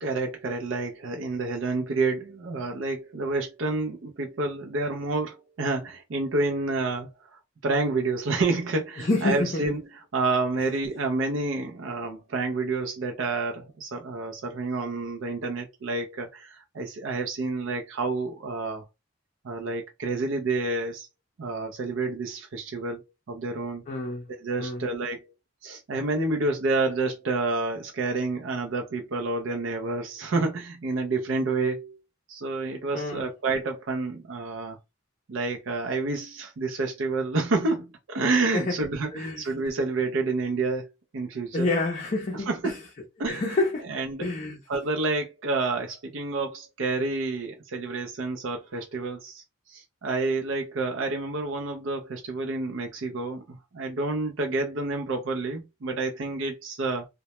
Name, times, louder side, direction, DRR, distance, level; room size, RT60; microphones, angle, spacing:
voice 1, 0.0-7.1 7.6-9.8 10.1-18.8 19.4-21.1 21.4-23.8 24.4-25.3 25.6-32.0 32.3-34.8 35.3-40.9 41.1-41.7 42.3-42.8 43.2-43.6 43.9-44.3 44.7-49.4 49.7-57.1, right 3 dB, 70° right, 0.5 m, -29 dB
voice 2, 9.0-9.7 23.9-24.3 24.6-24.8 32.9-33.2 38.5-38.8 39.1-39.5 41.5-42.8 43.3-43.9 44.2-44.6, left 2 dB, 40° left, 0.5 m, -28 dB
2.1 x 2.0 x 2.8 m
head